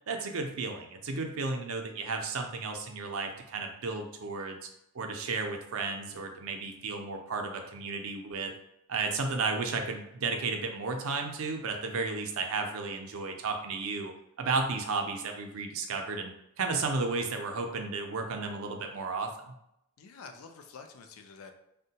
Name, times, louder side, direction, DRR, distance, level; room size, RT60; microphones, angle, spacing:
voice 1, 0.1-4.7 4.9-8.5 8.9-14.1 14.4-19.5, right 4 dB, 70° right, 4 dB, 0.4 m, -33 dB
voice 2, 20.0-21.5, left 5 dB, 75° left, 6 dB, 0.4 m, -48 dB
3.6 x 2.1 x 2.7 m, 0.80 s
head